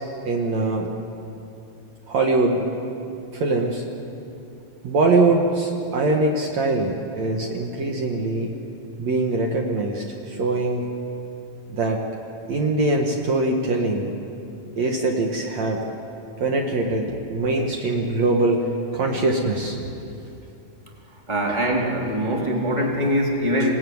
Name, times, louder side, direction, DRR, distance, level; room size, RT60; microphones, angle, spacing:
voice 1, 0.3-0.9 2.1-2.6 3.3-3.8 4.8-8.5 9.0-10.9 11.7-12.0 12.5-14.1 14.8-15.8 16.4-18.7 18.9-19.9, right 2 dB, 60° right, 1 dB, 2.7 m, -22 dB
voice 2, 21.3-23.7, equal, 10° right, -1 dB, 3.2 m, -22 dB
27.0 x 18.0 x 9.6 m, 2.7 s
omnidirectional pair, 3.8 m